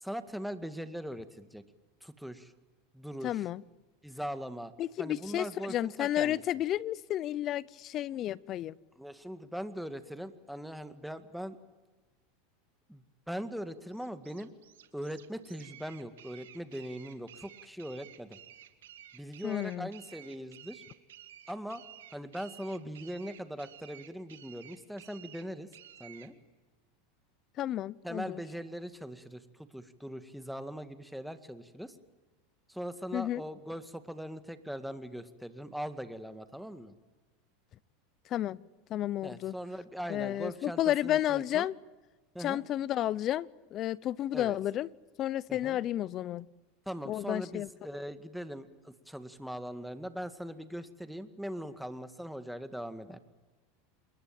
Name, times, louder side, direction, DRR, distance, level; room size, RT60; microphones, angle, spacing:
voice 1, 0.0-1.6 2.0-2.5 2.9-3.5 4.0-4.7 5.0-6.4 9.0-11.6 12.9-14.5 14.9-18.4 19.1-20.8 21.5-21.8 22.1-25.7 26.0-26.3 28.0-29.4 29.7-32.0 32.7-36.9 39.2-41.7 42.3-42.6 44.3-44.6 45.5-45.8 46.9-53.2, equal, ahead, 2.0 m, -40 dB
voice 2, 3.2-3.6 4.8-8.8 19.4-19.9 27.6-28.4 33.1-33.4 38.3-38.6 38.9-39.6 40.1-41.7 42.4-44.9 45.2-46.5 47.1-47.7, left 12 dB, 40° left, 0.8 m, -32 dB
sound 1, 13.9-26.3, right 11 dB, 85° right, 2.2 m, -53 dB
27.5 x 22.0 x 9.1 m
hypercardioid pair, 110°, 0 cm